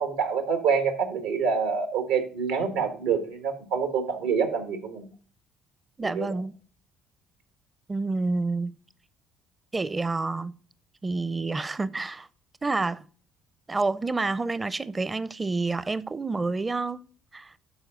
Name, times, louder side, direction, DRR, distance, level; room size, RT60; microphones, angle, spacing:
voice 1, 0.0-5.0 6.1-6.3, right 6 dB, 85° right, 1.5 m, -26 dB
voice 2, 6.0-6.6 7.9-8.7 9.7-10.5 11.0-12.3 12.6-13.1 13.7-17.0 17.3-17.5, right 3 dB, 25° right, 0.6 m, -28 dB
12.0 x 4.6 x 3.8 m
hypercardioid pair, 60°, 0 cm